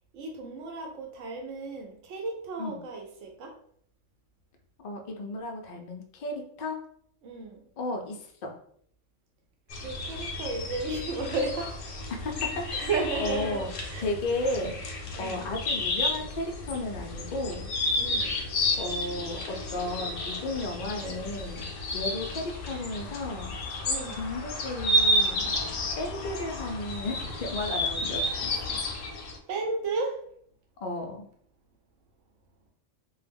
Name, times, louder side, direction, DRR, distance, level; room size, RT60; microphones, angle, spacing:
voice 1, 0.1-3.5 7.2-7.6 9.8-11.7 12.7-14.1 14.4-14.7 15.2-15.4 18.0-18.4 23.8-24.3 29.5-30.2, right 3 dB, 75° right, 2 dB, 1.0 m, -33 dB
voice 2, 4.8-6.8 7.8-8.5 12.1-12.9 13.2-13.7 14.0-17.7 18.8-23.9 24.2-25.6 26.0-28.8 30.8-31.3, left 2 dB, 70° left, 2 dB, 0.4 m, -34 dB
sound 1, 9.7-29.4, left 1 dB, 90° left, 1.0 m, -31 dB
2.3 x 2.0 x 3.3 m, 0.63 s
omnidirectional pair, 1.3 m